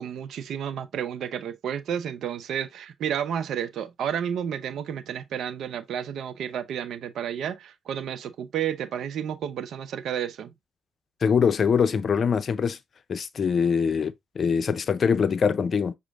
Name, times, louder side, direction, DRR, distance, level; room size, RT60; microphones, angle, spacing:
voice 1, 0.0-10.5, right 9 dB, 65° right, 0.6 m, -31 dB
voice 2, 11.2-12.8 13.1-15.9, left 6 dB, 50° left, 0.5 m, -23 dB
6.1 x 2.5 x 3.4 m
hypercardioid pair, 45°, 0 cm